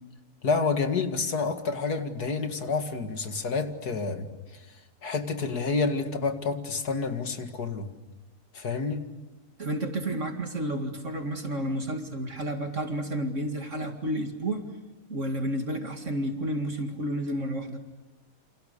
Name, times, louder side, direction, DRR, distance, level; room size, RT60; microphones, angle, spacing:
voice 1, 0.4-4.3 5.0-7.9 8.5-9.1, left 4 dB, 70° left, 7 dB, 2.6 m, -29 dB
voice 2, 9.6-14.6 15.1-17.8, right 1 dB, 45° right, 4 dB, 2.5 m, -31 dB
29.5 x 27.5 x 6.8 m, 1.0 s
omnidirectional pair, 1.7 m